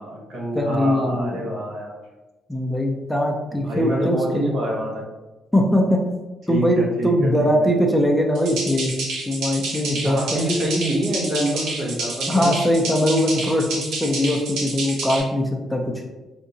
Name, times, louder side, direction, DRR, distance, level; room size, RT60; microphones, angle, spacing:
voice 1, 0.0-2.0 3.6-5.1 6.5-7.1 7.4-7.5 9.9-12.6, equal, 65° right, -2 dB, 1.0 m, -26 dB
voice 2, 0.5-1.5 2.5-4.4 5.5-6.0 6.5-8.9 9.3-10.5 12.3-15.8, equal, 5° left, 1 dB, 0.5 m, -21 dB
sound 1, 8.3-15.2, right 3 dB, 85° right, 0.8 m, -29 dB
3.5 x 2.6 x 2.7 m, 1.1 s
cardioid pair, 90°, 0 cm